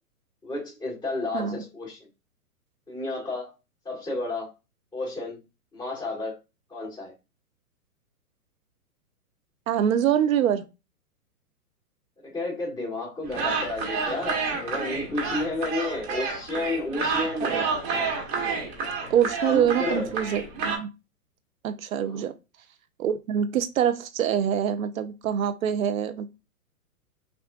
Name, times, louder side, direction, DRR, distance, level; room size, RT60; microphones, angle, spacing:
voice 1, 0.4-2.0 2.9-3.5 3.8-4.5 4.9-5.4 5.7-6.4 6.7-7.1 12.2-17.6 19.4-20.1 22.0-22.3, left 2 dB, 10° left, 2.0 m, -31 dB
voice 2, 9.7-10.6 17.4-17.6 19.1-20.9 21.6-22.3 23.0-26.3, right 9 dB, 60° right, 0.7 m, -25 dB
sound 1, 13.3-20.8, right 4 dB, 35° right, 1.3 m, -29 dB
5.9 x 2.5 x 2.4 m
hypercardioid pair, 130°, 46 cm